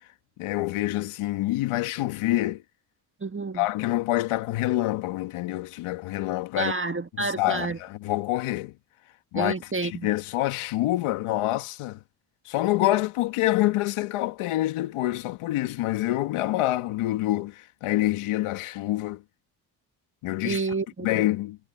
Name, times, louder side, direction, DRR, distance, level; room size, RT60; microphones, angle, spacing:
voice 1, 0.4-2.6 3.5-6.7 7.2-8.7 9.3-9.5 9.8-12.0 12.5-19.2 20.2-20.6 21.0-21.6, left 16 dB, 85° left, 1.9 m, -26 dB
voice 2, 3.2-3.7 6.6-7.8 9.3-10.1 20.4-21.3, right 3 dB, 25° right, 1.5 m, -29 dB
supercardioid pair, 45°, 49 cm